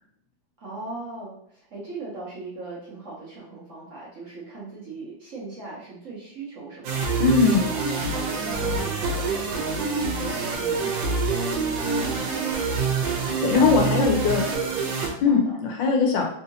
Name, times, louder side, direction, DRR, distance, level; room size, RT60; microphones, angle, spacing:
voice 1, 0.6-7.0 7.7-15.5, right 3 dB, 55° right, -6 dB, 0.9 m, -39 dB
sound 1, 6.8-15.1, right 4 dB, 90° right, 1.4 m, -26 dB
voice 2, 7.2-7.7 13.4-14.4 15.2-16.2, left 5 dB, 80° left, 1 dB, 1.4 m, -20 dB
3.6 x 2.7 x 2.6 m, 0.69 s
omnidirectional pair, 2.0 m